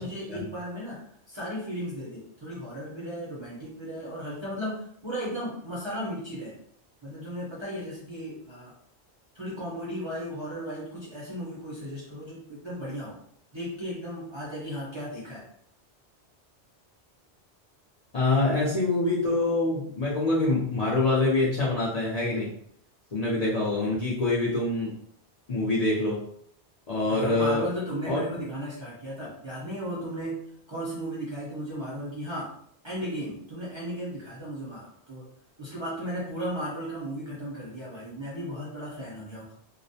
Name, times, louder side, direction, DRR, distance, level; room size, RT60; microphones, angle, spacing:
voice 1, 0.0-6.5 7.0-8.7 9.3-13.2 13.5-15.4 27.1-32.5 32.8-35.2 35.6-39.5, equal, 30° right, -7 dB, 0.6 m, -35 dB
voice 2, 18.1-22.5 23.1-25.0 25.5-26.2 26.9-27.7 28.1-28.2, left 2 dB, 45° left, -7 dB, 0.5 m, -25 dB
2.4 x 2.0 x 2.7 m, 0.65 s
omnidirectional pair, 1.2 m